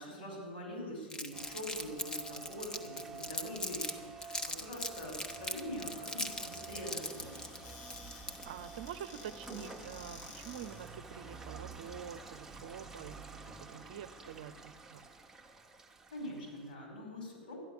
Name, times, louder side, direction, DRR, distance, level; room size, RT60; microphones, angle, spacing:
voice 1, 0.0-7.5 16.1-17.6, equal, 70° left, 0 dB, 5.4 m, -44 dB
Crumpling crinkling, 1.1-3.9 4.2-8.6, left 2 dB, 15° left, 1.1 m, -40 dB
Rain, 1.3-16.7, right 4 dB, 5° right, 1.3 m, -50 dB
Squeak / Cupboard open or close, 6.1-11.0, left 4 dB, 50° left, 1.8 m, -53 dB
voice 2, 8.5-15.0, right 9 dB, 60° right, 12 dB, 0.7 m, -47 dB
13.0 x 10.5 x 6.8 m, 1.4 s
figure-of-eight pair, 85°, 5 cm